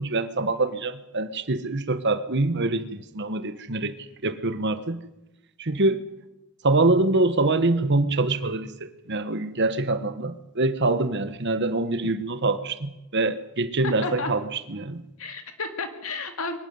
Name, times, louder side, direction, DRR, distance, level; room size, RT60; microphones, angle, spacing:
voice 1, 0.0-4.0 4.2-5.0 5.6-6.0 6.6-15.0, right 2 dB, 50° right, 12 dB, 1.2 m, -25 dB
voice 2, 13.8-14.3 15.2-16.6, left 3 dB, 70° left, 7 dB, 2.5 m, -32 dB
22.5 x 13.0 x 9.6 m, 0.95 s
head